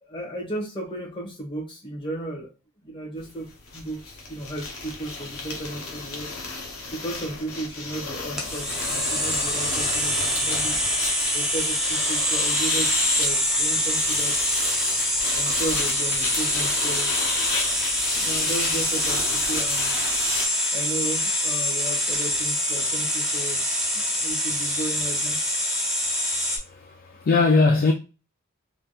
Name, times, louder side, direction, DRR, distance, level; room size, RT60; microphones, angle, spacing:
voice 1, 0.0-2.5 2.8-3.5 3.7-6.4 6.9-10.8 11.3-14.6 15.3-17.1 18.1-20.0 20.7-23.6 23.9-25.4, right 1 dB, 25° left, 1.1 m, -34 dB
sound 1, 3.2-3.3 3.5-20.5, left 3 dB, 85° left, 0.8 m, -32 dB
sound 2, 8.4-26.6, equal, ahead, 0.6 m, -25 dB
voice 2, 26.3-27.9, left 3 dB, 45° left, 0.4 m, -21 dB
3.3 x 2.7 x 2.3 m
head